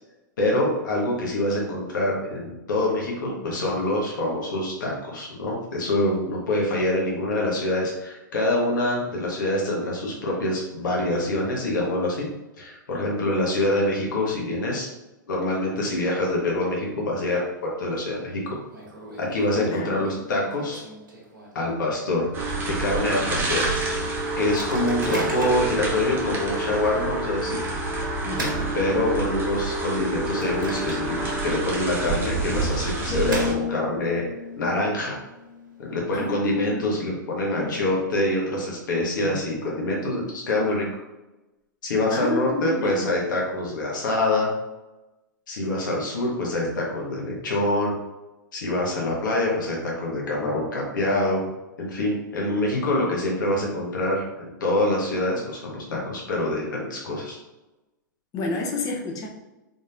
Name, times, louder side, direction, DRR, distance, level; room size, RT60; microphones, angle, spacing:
voice 1, 0.4-12.3 12.6-14.9 15.3-17.4 17.8-18.6 19.2-20.8 21.5-22.3 22.6-23.7 24.4-27.6 28.7-34.2 34.6-35.2 35.8-40.8 41.8-44.5 45.5-48.0 48.5-51.4 51.8-57.4, left 1 dB, 70° left, -3 dB, 1.3 m, -25 dB
Microwave oven, 17.5-18.0 18.3-18.4 18.7-21.8 22.2-22.3 22.6-22.9 23.4-23.5 24.2-25.8 26.4-26.5 27.6-29.5 29.9-31.4 31.7-31.8 32.7-34.1, right 1 dB, 85° right, 1.4 m, -37 dB
voice 2, 19.7-20.1 25.1-25.2 28.2-28.8 36.1-36.9 37.6-37.9 39.2-39.4 42.1-43.1 52.4-52.6 58.3-59.3, left 3 dB, 30° left, 1 dB, 0.9 m, -30 dB
sound 1, 22.3-33.5, right 2 dB, 20° right, 0.8 m, -28 dB
sound 2, 33.1-37.0 37.5-37.8, left 4 dB, 10° left, 1.4 m, -33 dB
3.9 x 3.7 x 2.6 m, 1.0 s
hypercardioid pair, 110°, 11 cm